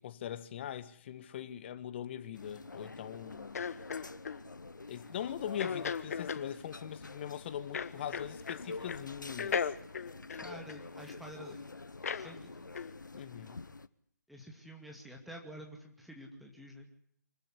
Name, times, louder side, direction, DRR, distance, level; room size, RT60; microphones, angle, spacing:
voice 1, 0.0-3.6 4.9-9.7 13.1-13.6, left 10 dB, 35° left, 1.4 m, -41 dB
sound 1, 2.3-13.9, left 3 dB, 85° left, 1.1 m, -48 dB
sound 2, 3.6-4.4 5.6-6.5 7.7-8.6 8.9-9.1 9.4-11.2 12.0-12.3 12.7-12.9, left 6 dB, 55° left, 1.3 m, -36 dB
voice 2, 10.4-11.7 12.1-12.5 14.3-16.9, right 1 dB, ahead, 2.4 m, -49 dB
25.0 x 14.5 x 9.8 m
figure-of-eight pair, 145°, 10 cm